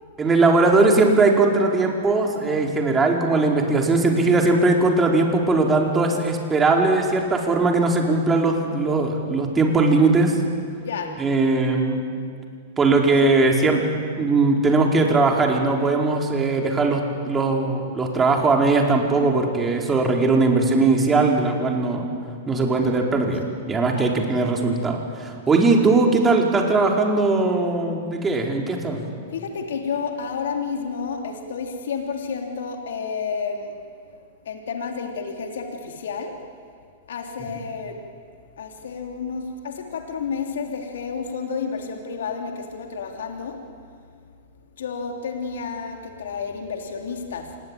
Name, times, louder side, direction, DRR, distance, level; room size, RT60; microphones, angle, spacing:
voice 1, 0.2-10.3 11.2-12.1 12.8-13.8 14.2-22.1 22.5-23.4 23.7-29.0, right 3 dB, 20° right, 1 dB, 4.8 m, -19 dB
voice 2, 10.8-11.1 13.2-13.3 23.9-24.1 29.3-36.4 37.1-38.0 38.6-43.6 44.8-47.6, left 5 dB, 75° left, 3 dB, 3.1 m, -31 dB
27.0 x 21.5 x 9.2 m, 2.2 s
hypercardioid pair, 110°, 0 cm